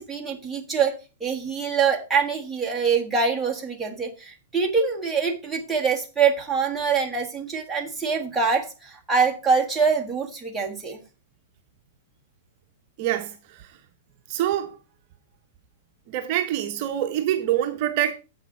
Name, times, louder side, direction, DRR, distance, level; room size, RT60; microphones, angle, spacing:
voice 1, 0.0-11.0, right 5 dB, 5° right, 1.5 m, -24 dB
voice 2, 13.0-13.7 14.3-14.8 16.1-18.1, right 12 dB, 40° right, 0.8 m, -25 dB
7.8 x 6.6 x 4.9 m
hypercardioid pair, 150°, 0 cm